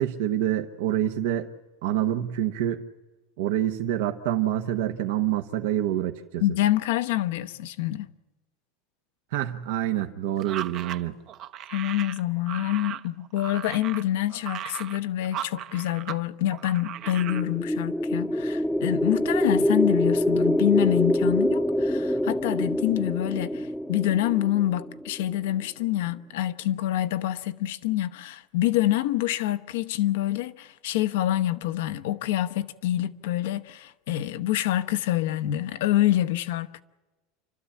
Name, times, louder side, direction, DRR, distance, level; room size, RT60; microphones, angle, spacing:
voice 1, 0.0-1.5 1.8-2.9 3.4-6.4 9.3-11.1, right 12 dB, 75° right, 1.1 m, -27 dB
voice 2, 6.4-8.1 11.7-36.8, left 14 dB, 80° left, 1.0 m, -26 dB
sound 1, 10.4-16.2 16.5-17.5, right 11 dB, 45° right, 0.8 m, -37 dB
sound 2, 17.2-25.3, equal, ahead, 0.8 m, -25 dB
29.0 x 12.5 x 8.5 m
supercardioid pair, 135°, 0 cm